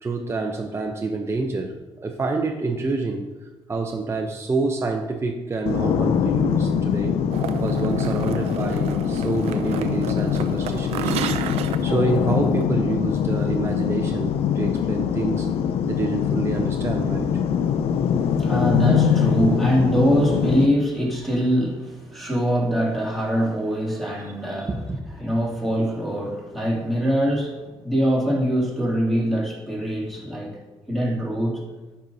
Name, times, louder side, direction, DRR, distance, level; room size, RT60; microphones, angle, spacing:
voice 1, 0.0-3.3 3.7-7.2 7.6-11.1 11.8-15.5 15.9-17.4 18.5-18.6 24.7-24.8, right 3 dB, 25° right, 3 dB, 0.6 m, -27 dB
sound 1, 5.7-20.7, left 8 dB, 70° left, 0.4 m, -23 dB
sound 2, 7.3-12.7, right 8 dB, 85° right, 0.4 m, -32 dB
voice 2, 18.1-24.8 25.2-30.6 30.9-31.6, equal, ahead, -4 dB, 2.6 m, -23 dB
10.5 x 5.5 x 2.7 m, 1.2 s
cardioid pair, 80°, 10 cm